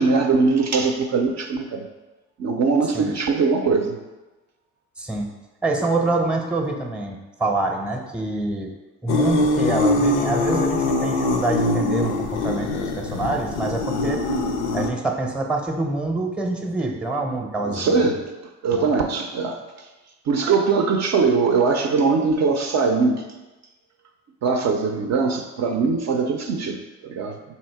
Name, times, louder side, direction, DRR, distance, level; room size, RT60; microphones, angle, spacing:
voice 1, 0.0-1.9 2.4-4.0 17.6-18.3 18.6-19.6 20.3-23.3 24.4-27.4, right 4 dB, 50° right, 3 dB, 0.5 m, -21 dB
voice 2, 5.0-5.3 5.6-8.7 9.0-14.2 14.7-18.0 18.7-18.9, right 2 dB, 5° right, 3 dB, 0.6 m, -26 dB
sound 1, 9.1-14.9, left 2 dB, 90° left, 0.5 m, -23 dB
2.9 x 2.7 x 4.5 m, 1.1 s
supercardioid pair, 65°, 35 cm